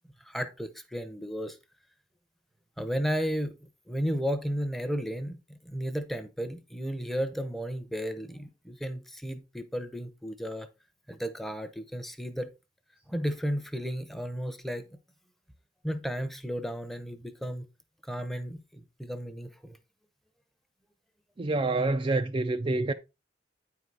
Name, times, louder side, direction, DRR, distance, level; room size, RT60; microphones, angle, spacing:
voice 1, 0.3-1.6 2.8-5.4 5.6-10.7 11.1-12.5 13.1-14.8 15.8-17.7 18.0-19.8, equal, ahead, 0.8 m, -33 dB
voice 2, 21.4-22.9, right 2 dB, 30° right, 0.4 m, -27 dB
9.2 x 4.7 x 3.9 m
head